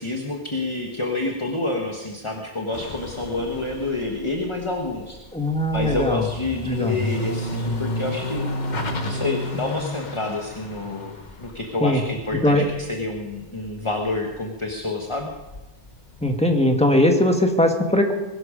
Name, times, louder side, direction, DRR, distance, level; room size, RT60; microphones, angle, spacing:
voice 1, 0.0-5.2 5.7-8.4 9.0-15.3, left 2 dB, 30° left, 1 dB, 1.5 m, -28 dB
sound 1, 2.7-13.7 14.0-16.4, left 1 dB, 45° left, 1.3 m, -32 dB
voice 2, 5.3-6.3 6.6-7.0 11.8-12.0 12.4-12.7 16.2-18.1, left 1 dB, 5° left, 3 dB, 1.7 m, -20 dB
21.5 x 12.0 x 5.1 m, 1.1 s
omnidirectional pair, 1.0 m